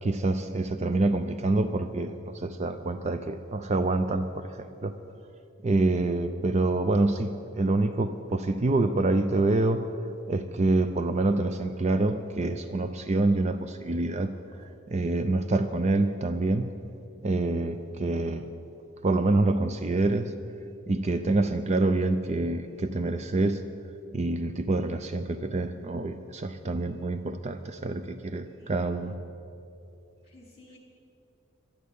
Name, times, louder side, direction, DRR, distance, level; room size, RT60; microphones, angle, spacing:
voice 1, 0.0-4.9 5.6-9.8 10.3-14.3 14.9-16.7 17.2-18.5 19.0-20.3 20.9-23.6 24.1-29.1, right 2 dB, 35° right, 9 dB, 0.5 m, -26 dB
voice 2, 28.6-29.1 30.2-30.8, left 1 dB, 30° left, -1 dB, 3.7 m, -54 dB
12.0 x 11.0 x 8.4 m, 2.7 s
head